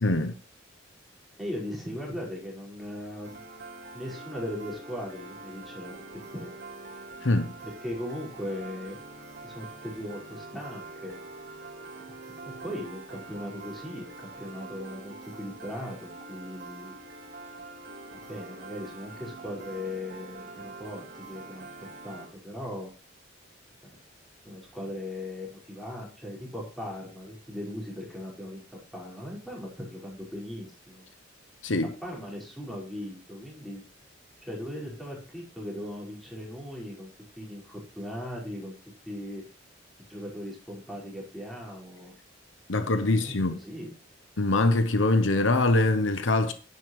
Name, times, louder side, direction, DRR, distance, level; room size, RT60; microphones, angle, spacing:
voice 1, 0.0-0.3 7.2-7.5 31.6-31.9 42.7-43.6 44.4-46.5, left 2 dB, 75° left, 1.0 m, -23 dB
voice 2, 1.4-3.4 3.9-5.9 6.3-6.5 7.6-9.0 9.4-11.2 12.4-16.9 18.3-22.9 24.5-28.6 28.9-31.1 32.0-33.8 34.4-37.1 37.4-38.7 39.1-39.4 40.1-42.1 42.7-43.4 43.6-43.9, left 1 dB, ahead, 5.3 m, -38 dB
Piano, 3.2-22.3, right 3 dB, 55° right, 2.2 m, -45 dB
10.5 x 9.7 x 3.2 m
head